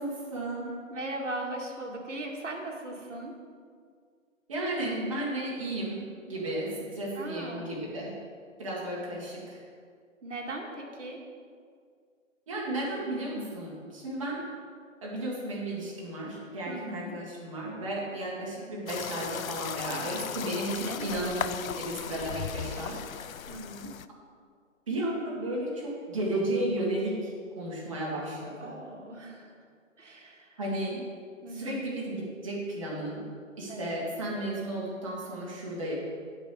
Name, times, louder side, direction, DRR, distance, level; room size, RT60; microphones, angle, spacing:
voice 1, 0.0-0.7 4.5-8.2 8.6-9.6 12.5-14.4 15.0-21.4 21.8-23.0 24.9-28.8 30.6-31.0 31.5-33.2 33.6-35.9, right 1 dB, 25° right, -5 dB, 1.7 m, -33 dB
voice 2, 0.9-3.4 7.1-7.7 10.2-11.3 12.9-13.1 16.7-17.1 20.9-21.3 23.5-24.0 28.6-29.5 30.0-30.6 31.4-31.8 33.7-34.0, right 1 dB, 65° right, 0 dB, 1.9 m, -39 dB
sound 1, 18.9-24.1, left 9 dB, 90° left, 0.6 m, -37 dB
8.2 x 6.1 x 6.7 m, 2.1 s
hypercardioid pair, 175°, 40 cm